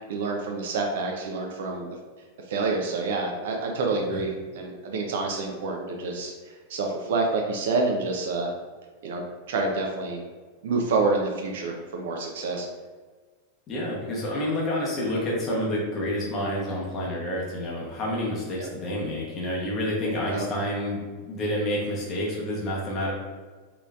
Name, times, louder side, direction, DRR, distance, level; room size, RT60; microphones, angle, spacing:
voice 1, 0.1-2.0 2.5-6.3 6.7-8.5 9.0-9.2 9.5-10.2 10.6-12.7 20.3-20.4, right 3 dB, 55° right, 1 dB, 0.4 m, -27 dB
voice 2, 3.9-4.3 13.7-23.1, left 1 dB, 30° left, -4 dB, 0.9 m, -29 dB
3.9 x 3.1 x 2.4 m, 1.4 s
figure-of-eight pair, 90°, 0 cm